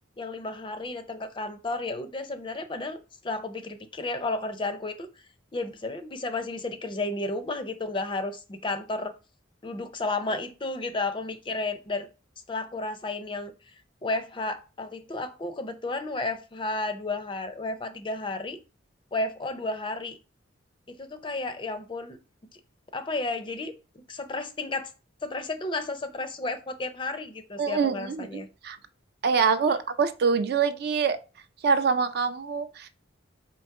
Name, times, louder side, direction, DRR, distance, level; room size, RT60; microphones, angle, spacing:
voice 1, 0.2-3.0 3.2-5.1 5.5-9.1 9.6-12.1 12.5-13.5 14.0-18.6 19.1-20.2 21.0-22.2 22.9-23.7 24.1-24.9 25.2-28.5 29.7-29.8, left 2 dB, 25° left, 0.4 m, -32 dB
voice 2, 27.6-28.8 29.2-31.2 31.6-32.9, right 5 dB, 55° right, 0.4 m, -25 dB
4.5 x 3.0 x 3.6 m
head